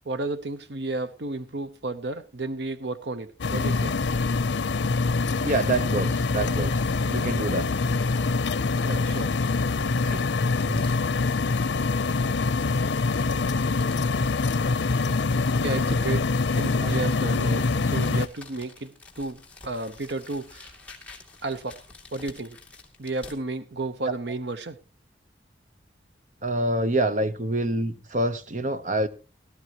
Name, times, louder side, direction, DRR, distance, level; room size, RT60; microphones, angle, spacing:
voice 1, 0.1-4.0 8.9-9.6 15.6-16.3 16.5-20.8 21.4-21.8 22.1-22.6 23.0-24.8, right 2 dB, 70° right, 0.8 m, -32 dB
sound 1, 3.4-18.3, left 3 dB, 80° left, 0.6 m, -25 dB
voice 2, 5.4-6.8 7.1-7.7 10.1-10.2 10.7-10.9 16.8-16.9 24.1-24.2 26.4-29.1, right 2 dB, 45° right, 0.9 m, -26 dB
sound 2, 9.8-23.4, left 3 dB, 5° left, 2.5 m, -50 dB
17.5 x 13.0 x 2.9 m
head